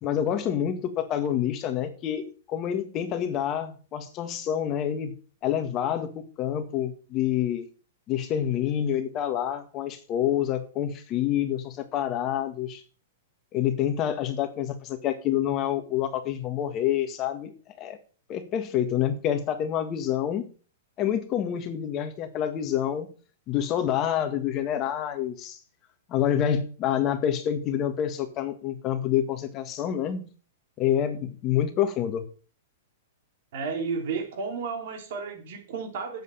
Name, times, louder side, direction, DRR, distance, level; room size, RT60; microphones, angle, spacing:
voice 1, 0.0-5.1 5.4-7.7 8.1-12.8 13.5-17.5 17.8-18.0 18.3-20.5 21.0-23.1 23.5-25.6 26.1-30.2 30.8-32.3, left 10 dB, 30° left, 8 dB, 1.7 m, -27 dB
voice 2, 33.5-36.2, right 5 dB, 60° right, 5 dB, 3.3 m, -32 dB
7.9 x 7.8 x 7.1 m, 0.39 s
hypercardioid pair, 135°, 0 cm